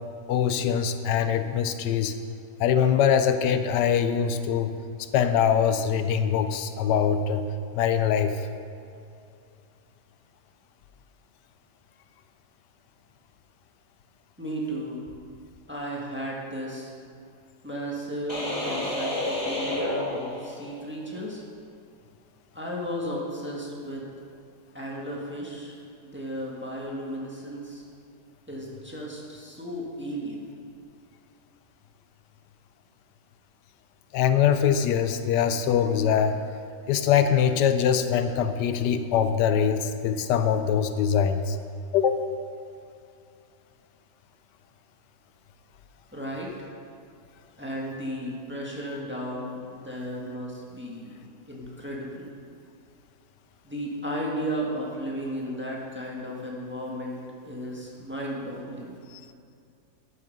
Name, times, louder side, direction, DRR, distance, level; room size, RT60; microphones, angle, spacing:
voice 1, 0.3-2.1 2.6-4.7 5.1-7.4 7.7-8.3 34.1-36.4 36.9-41.6 41.9-42.2, left 8 dB, 85° left, 9 dB, 1.2 m, -23 dB
voice 2, 14.4-15.2 15.7-16.9 17.6-21.4 22.5-24.1 24.7-25.8 26.0-27.8 28.5-30.5 46.1-46.7 47.6-51.2 51.5-52.3 53.6-59.0, equal, 5° right, -3 dB, 1.5 m, -34 dB
sound 1, 18.3-20.9, left 1 dB, 20° left, 1.5 m, -30 dB
12.0 x 6.7 x 5.3 m, 2.5 s
omnidirectional pair, 1.8 m